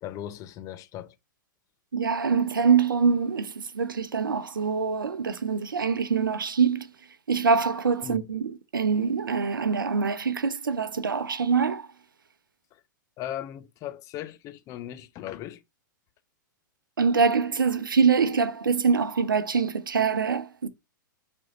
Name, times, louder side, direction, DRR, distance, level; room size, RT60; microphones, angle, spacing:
voice 1, 0.0-1.1 8.0-8.2 12.7-12.8 13.2-15.6, left 12 dB, 30° left, 0.7 m, -38 dB
voice 2, 1.9-6.9 7.3-11.9 17.0-20.7, right 5 dB, 75° right, 0.7 m, -24 dB
7.7 x 3.6 x 3.9 m
figure-of-eight pair, 105°, 11 cm